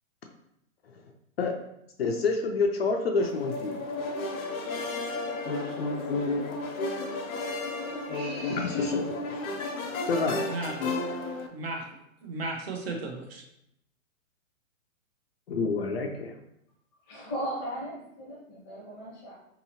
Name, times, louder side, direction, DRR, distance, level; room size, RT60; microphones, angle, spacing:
voice 1, 2.0-3.8 8.5-9.5 10.1-10.5 15.5-16.4, left 4 dB, 50° left, 2 dB, 0.4 m, -28 dB
sound 1, 3.2-11.5, left 3 dB, 85° left, 0.8 m, -32 dB
sound 2, 4.6-5.8 7.9-9.0, equal, 20° right, 0.3 m, -45 dB
voice 2, 10.5-10.9 11.5-13.4, right 2 dB, 50° right, 1 dB, 0.7 m, -35 dB
voice 3, 17.0-19.3, right 1 dB, 15° left, -6 dB, 0.7 m, -37 dB
3.9 x 2.8 x 2.8 m, 0.78 s
hypercardioid pair, 165°, 40 cm